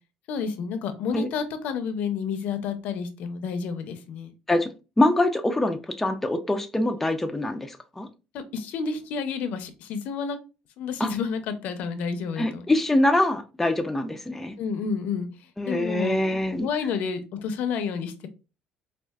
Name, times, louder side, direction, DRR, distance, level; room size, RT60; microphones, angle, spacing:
voice 1, 0.3-4.3 8.3-10.4 10.8-12.7 14.6-15.3 15.7-18.3, left 6 dB, 70° left, 0.6 m, -30 dB
voice 2, 5.0-8.1 11.0-11.1 12.4-14.5 15.6-16.7, left 1 dB, 10° left, 0.4 m, -24 dB
4.4 x 2.4 x 2.3 m
cardioid pair, 135°, 3 cm